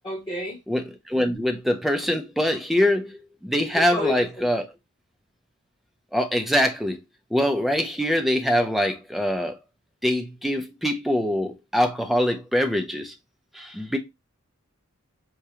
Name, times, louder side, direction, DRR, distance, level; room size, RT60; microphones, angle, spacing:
voice 1, 0.0-0.6 3.7-4.5, left 2 dB, 15° left, 1.0 m, -30 dB
voice 2, 0.7-4.7 6.1-7.0 7.3-9.6 10.0-13.1 13.5-14.0, equal, ahead, 0.5 m, -24 dB
4.8 x 2.2 x 2.8 m
head